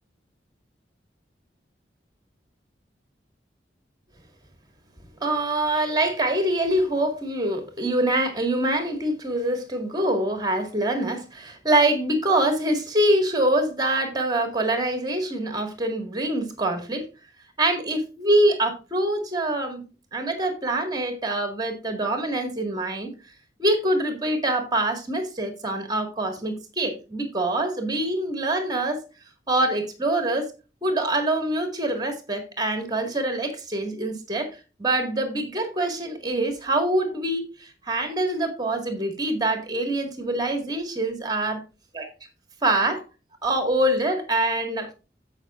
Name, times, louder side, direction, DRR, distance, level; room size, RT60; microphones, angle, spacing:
voice 1, 5.2-17.0 17.6-19.8 20.1-23.1 23.6-29.0 29.5-30.5 30.8-34.5 34.8-41.6 41.9-42.1 42.6-43.0 43.4-44.9, right 1 dB, 25° right, 1.9 m, -25 dB
16.0 x 5.7 x 2.5 m
head